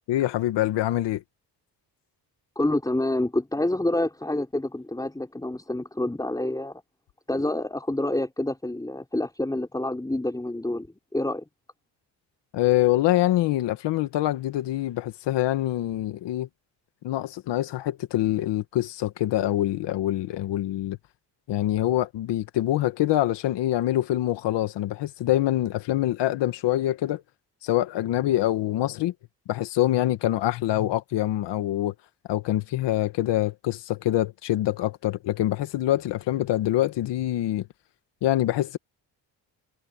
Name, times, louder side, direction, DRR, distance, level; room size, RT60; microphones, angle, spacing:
voice 1, 0.1-1.2 12.5-16.5 17.0-21.0 21.5-27.2 27.6-29.1 29.5-31.9 32.3-37.6 38.2-38.8, left 14 dB, 90° left, 1.8 m, -25 dB
voice 2, 2.6-6.8 7.3-11.4, left 1 dB, 10° left, 4.2 m, -27 dB
cardioid pair, 90°, 41 cm